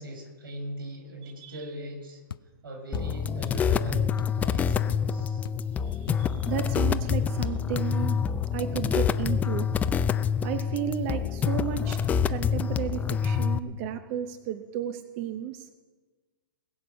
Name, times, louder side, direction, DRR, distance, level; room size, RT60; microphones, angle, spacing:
voice 1, 0.0-2.2 2.6-5.4, right 1 dB, 90° right, 1 dB, 6.0 m, -40 dB
voice 2, 1.2-1.7 5.8-8.2 8.5-9.7 10.4-12.0 12.3-15.7, right 10 dB, 35° right, 10 dB, 0.8 m, -33 dB
sound 1, 2.3-2.5 2.9-3.2 3.5-3.8 4.2-4.4 4.7-5.2 5.5-5.6 6.1-6.3 6.7-6.9, left 8 dB, 85° left, 0.5 m, -39 dB
sound 2, 2.9-13.6, left 7 dB, 15° left, 0.5 m, -27 dB
21.0 x 7.8 x 6.3 m, 1.3 s
hypercardioid pair, 140°, 11 cm